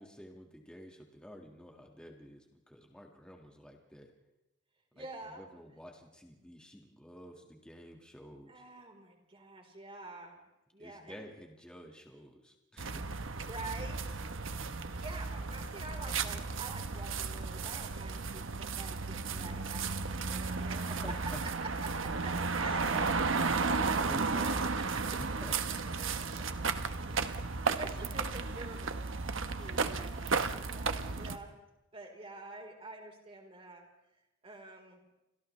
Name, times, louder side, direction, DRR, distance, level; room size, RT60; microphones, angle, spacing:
voice 1, 0.0-4.1 5.0-8.6 10.8-13.0 19.2-19.6 20.8-21.4 24.1-24.7 25.2-25.8 26.7-26.9 29.6-30.0, equal, 5° left, 1 dB, 1.9 m, -51 dB
voice 2, 4.9-5.5 8.5-10.4 10.7-11.2 13.4-14.2 14.9-21.0 21.8-24.1 25.1-25.2 26.1-26.4 27.0-27.4 27.8-29.3 29.6-31.5 31.9-33.9 34.4-35.0, right 2 dB, 30° right, 1 dB, 4.2 m, -47 dB
sound 1, 12.8-31.4, right 4 dB, 90° right, 1.1 m, -34 dB
29.5 x 26.5 x 3.3 m, 0.98 s
head